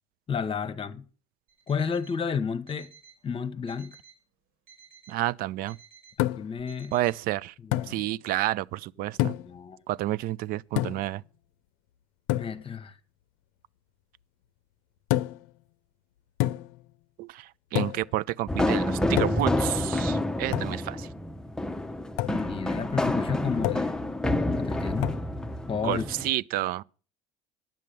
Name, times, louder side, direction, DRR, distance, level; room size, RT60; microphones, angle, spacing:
voice 1, 0.3-1.0 1.7-2.9 3.2-4.0 6.2-6.9 7.6-8.0 9.1-9.8 12.3-13.0 22.3-24.0 24.6-25.2 25.7-26.1, left 6 dB, 35° left, 1.0 m, -32 dB
Alarm, 1.5-2.2 2.7-3.2 3.7-4.2 4.7-5.2 5.7-6.2 6.7-7.2, right 6 dB, 85° right, 5.8 m, -54 dB
voice 2, 5.1-5.8 6.9-7.5 7.8-9.3 9.9-11.2 17.2-21.1 25.8-26.8, right 15 dB, 65° right, 0.5 m, -30 dB
sound 1, 6.2-6.6 7.7-8.0 9.2-9.6 10.8-11.1 12.3-12.6 15.1-15.5 16.4-16.8 17.7-18.1 19.2-19.6 20.5-20.8 22.2-22.4 23.6-24.0 25.0-25.3, left 16 dB, 75° left, 0.6 m, -28 dB
sound 2, 18.5-26.3, left 1 dB, 5° left, 0.7 m, -28 dB
10.5 x 7.5 x 6.9 m
hypercardioid pair, 75°, 16 cm